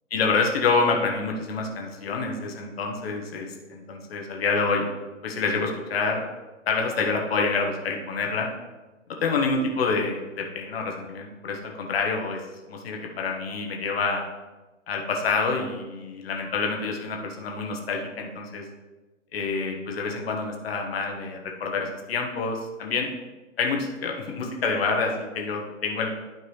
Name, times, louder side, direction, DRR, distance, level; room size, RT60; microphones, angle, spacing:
voice 1, 0.1-4.9 5.2-6.3 6.7-8.5 9.2-12.4 12.7-14.2 14.9-18.6 19.3-23.1 23.6-26.1, left 4 dB, 50° left, 1 dB, 1.4 m, -27 dB
12.0 x 4.6 x 3.2 m, 1.2 s
figure-of-eight pair, 130°, 39 cm